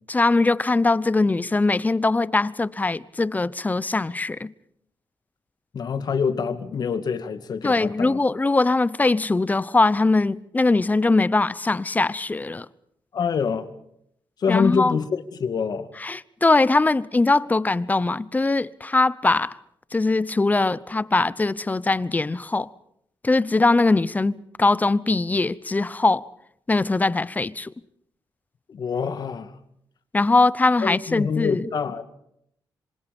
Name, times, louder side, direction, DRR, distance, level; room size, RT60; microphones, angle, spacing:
voice 1, 0.1-4.5 7.6-12.7 14.5-15.0 16.0-19.6 19.9-22.7 23.2-26.3 26.7-27.7 30.1-31.6, left 3 dB, 20° left, 0.8 m, -21 dB
voice 2, 5.7-8.2 13.1-13.7 14.4-15.9 28.7-29.5 30.8-32.0, left 6 dB, 60° left, 2.2 m, -25 dB
26.5 x 26.5 x 5.4 m
cardioid pair, 100°, 8 cm